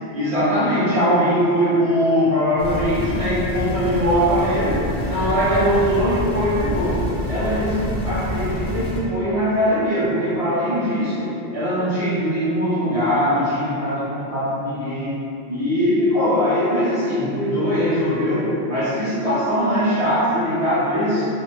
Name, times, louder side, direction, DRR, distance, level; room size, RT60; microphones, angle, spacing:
voice 1, 0.1-15.2 15.5-21.3, equal, 35° right, -12 dB, 0.9 m, -21 dB
sound 1, 2.6-9.0, equal, 55° left, 0.6 m, -27 dB
2.6 x 2.0 x 2.6 m, 2.8 s
omnidirectional pair, 1.0 m